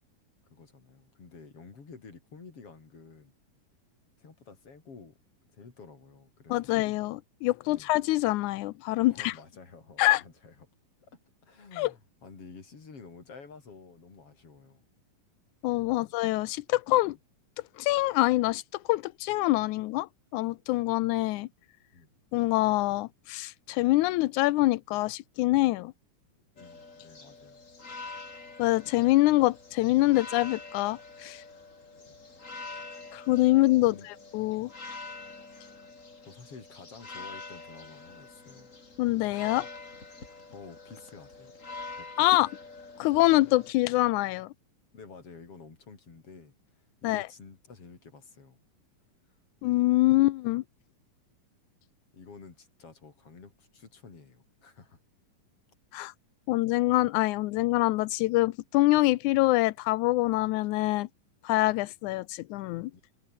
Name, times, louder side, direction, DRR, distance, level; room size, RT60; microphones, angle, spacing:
voice 1, 0.5-3.3 4.2-5.2 5.5-6.8 7.7-7.9 9.1-10.5 11.1-14.8 15.9-16.1 17.0-17.1 21.9-22.1 26.6-27.7 33.8-34.1 36.3-38.8 40.5-41.5 42.0-42.3 44.9-48.6 52.1-55.0 62.9-63.0, left 4 dB, 40° left, 5.1 m, -50 dB
voice 2, 6.5-9.3 10.0-10.2 11.8-11.9 15.6-17.2 17.8-21.5 22.3-25.9 28.6-31.4 33.1-34.7 39.0-39.7 42.2-42.5 43.0-44.5 47.0-47.3 49.6-50.6 55.9-56.1 56.5-61.1 61.4-62.9, left 18 dB, 75° left, 1.9 m, -25 dB
sound 1, 26.6-43.7, left 3 dB, 25° left, 3.0 m, -45 dB
omnidirectional pair, 4.0 m